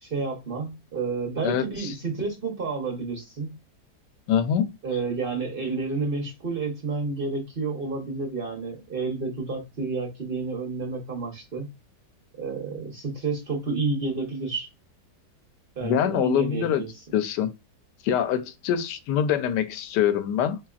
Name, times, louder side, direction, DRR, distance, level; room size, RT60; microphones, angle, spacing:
voice 1, 0.0-3.5 4.8-11.7 12.4-14.7 15.8-17.0, right 4 dB, 45° right, 0.9 m, -30 dB
voice 2, 1.4-1.9 4.3-4.7 15.8-16.8 17.1-17.5 18.0-20.6, left 9 dB, 90° left, 1.2 m, -24 dB
4.0 x 2.9 x 2.3 m
omnidirectional pair, 1.8 m